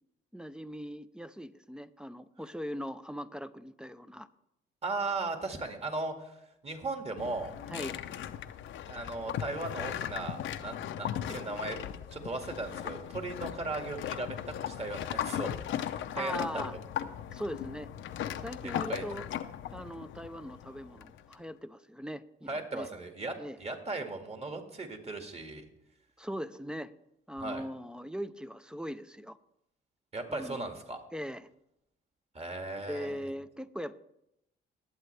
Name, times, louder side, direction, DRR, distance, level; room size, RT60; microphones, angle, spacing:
voice 1, 0.3-4.3 7.7-7.9 16.1-16.8 17.3-17.9 18.3-19.3 19.7-22.9 23.4-23.6 26.2-26.9 27.3-29.4 30.3-30.7 31.1-31.5 32.9-34.0, equal, 5° right, 13 dB, 0.5 m, -40 dB
voice 2, 4.8-6.3 6.6-7.5 8.9-11.8 12.1-15.6 15.9-16.7 18.9-19.1 22.5-25.6 27.4-27.6 30.1-31.0 32.3-33.3, right 3 dB, 30° right, 4 dB, 1.9 m, -37 dB
sound 1, 7.2-21.3, left 10 dB, 75° left, 0.7 m, -38 dB
19.5 x 8.0 x 3.3 m, 0.81 s
cardioid pair, 90°, 20 cm